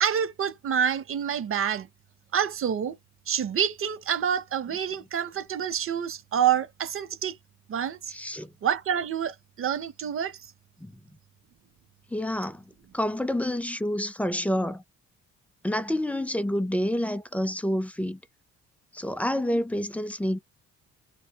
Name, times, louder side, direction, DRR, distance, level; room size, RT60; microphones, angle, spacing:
voice 1, 0.0-1.9 2.3-3.0 3.3-7.4 7.7-8.1 8.6-10.3, right 8 dB, 45° right, 0.6 m, -27 dB
voice 2, 8.1-8.5 10.8-10.9 12.1-12.6 12.9-14.8 15.6-18.2 18.9-20.4, left 1 dB, 5° left, 0.3 m, -28 dB
2.3 x 2.1 x 2.9 m
cardioid pair, 90°, 30 cm